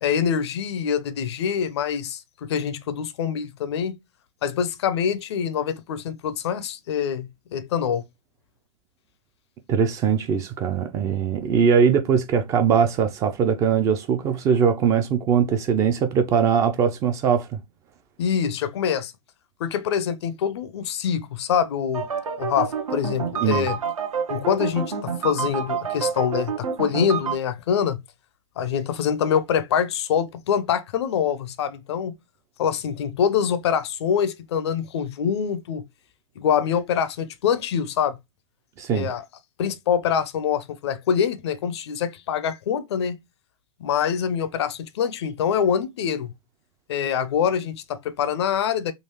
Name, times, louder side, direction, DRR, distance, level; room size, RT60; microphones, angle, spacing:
voice 1, 0.0-4.0 4.4-8.0 18.2-19.1 19.6-22.1 22.4-23.8 24.3-28.0 28.6-32.2 32.6-35.8 36.4-38.2 38.9-39.2 39.6-43.2 43.8-46.3 46.9-48.9, left 8 dB, 50° left, 0.5 m, -25 dB
voice 2, 9.7-17.6 23.4-23.7 38.8-39.1, right 7 dB, 15° right, 0.3 m, -21 dB
sound 1, 21.9-27.3, right 6 dB, 70° right, 0.8 m, -28 dB
3.8 x 2.4 x 2.8 m
figure-of-eight pair, 110°, 18 cm